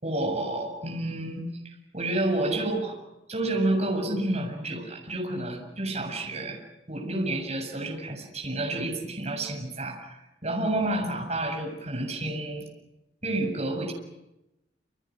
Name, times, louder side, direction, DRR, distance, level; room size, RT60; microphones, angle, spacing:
voice 1, 0.0-3.0 3.3-6.6 6.9-12.6 13.2-13.9, right 1 dB, 35° right, 1 dB, 7.5 m, -30 dB
29.5 x 28.5 x 6.4 m, 0.92 s
head